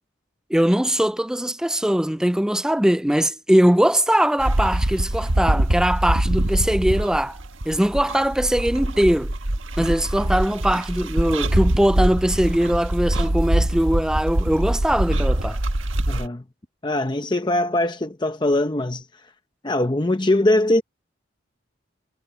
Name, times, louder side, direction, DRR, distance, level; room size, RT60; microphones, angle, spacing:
voice 1, 0.5-7.4 7.7-9.3 9.8-15.6, equal, 5° right, 0.3 m, -21 dB
sound 1, 4.4-16.3, right 1 dB, 85° right, 1.5 m, -23 dB
voice 2, 16.1-16.4 16.8-19.0 19.6-20.8, left 1 dB, 25° left, 0.8 m, -21 dB
head